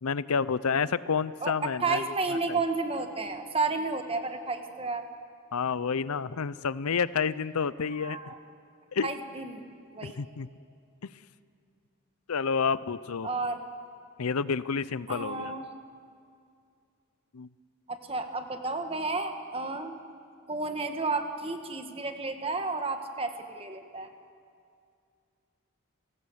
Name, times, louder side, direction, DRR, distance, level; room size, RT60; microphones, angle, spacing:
voice 1, 0.0-2.0 5.5-8.3 8.9-9.1 10.0-10.5 12.3-13.3 14.2-15.5 17.3-17.5, left 5 dB, 85° left, 17 dB, 0.6 m, -29 dB
voice 2, 1.4-5.1 7.9-8.4 9.0-9.6 9.9-10.2 13.2-13.6 15.1-15.6 17.9-20.0 20.5-24.1, right 3 dB, 25° right, 6 dB, 1.6 m, -32 dB
29.5 x 17.5 x 8.1 m, 2.3 s
head